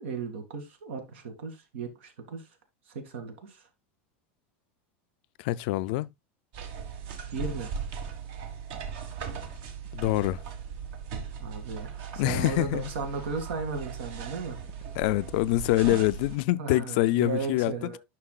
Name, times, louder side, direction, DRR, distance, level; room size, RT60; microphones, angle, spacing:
voice 1, 0.0-2.4 2.9-3.6 7.3-7.7 11.4-14.6 16.5-18.0, right 4 dB, 80° right, 2.2 m, -35 dB
voice 2, 5.4-6.1 9.9-10.4 12.2-12.9 15.0-17.7, left 17 dB, 55° left, 0.3 m, -25 dB
sound 1, 6.5-16.4, right 6 dB, 55° right, 1.5 m, -38 dB
9.7 x 6.0 x 2.3 m
supercardioid pair, 160°, 6 cm